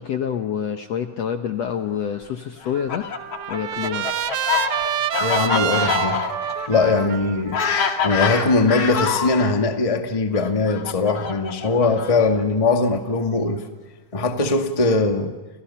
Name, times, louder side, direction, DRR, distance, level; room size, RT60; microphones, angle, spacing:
voice 1, 0.0-3.1 3.5-4.1, left 8 dB, 65° left, 6 dB, 1.7 m, -27 dB
Fowl, 2.6-9.5 10.3-12.4, left 6 dB, 45° left, 2.9 m, -26 dB
Trumpet, 2.7-8.9, right 10 dB, 70° right, 1.3 m, -28 dB
voice 2, 5.2-6.2 6.7-7.6 8.0-13.6 14.1-15.3, left 3 dB, 15° left, 4 dB, 1.3 m, -20 dB
30.0 x 30.0 x 5.8 m, 1.2 s
omnidirectional pair, 4.0 m